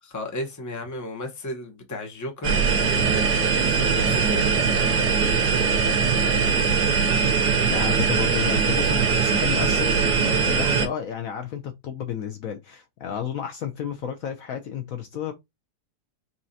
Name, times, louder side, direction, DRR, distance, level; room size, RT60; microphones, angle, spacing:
voice 1, 0.0-2.6 3.7-4.5, left 1 dB, 15° left, 0.8 m, -34 dB
sound 1, 2.4-10.9, right 5 dB, 75° right, 1.5 m, -21 dB
voice 2, 7.7-15.3, left 8 dB, 65° left, 1.0 m, -32 dB
5.5 x 3.0 x 2.7 m
omnidirectional pair, 1.7 m